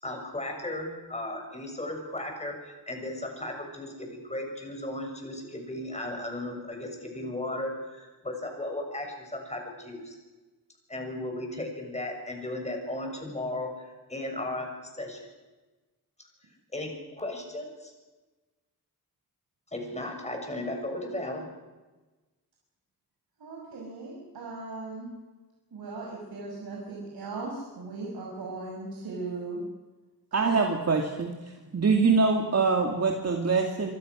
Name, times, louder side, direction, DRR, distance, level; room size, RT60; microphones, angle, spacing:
voice 1, 0.0-10.2 10.9-14.7 14.9-15.3 16.7-17.9 19.7-21.5, left 1 dB, 20° left, 2 dB, 6.9 m, -35 dB
voice 2, 23.4-25.1 25.7-29.6 30.4-30.5, right 3 dB, 90° right, -2 dB, 6.0 m, -38 dB
voice 3, 30.3-31.3 31.7-33.9, right 4 dB, 45° right, 2 dB, 2.5 m, -24 dB
25.5 x 25.0 x 6.5 m, 1.2 s
wide cardioid pair, 135°, 36 cm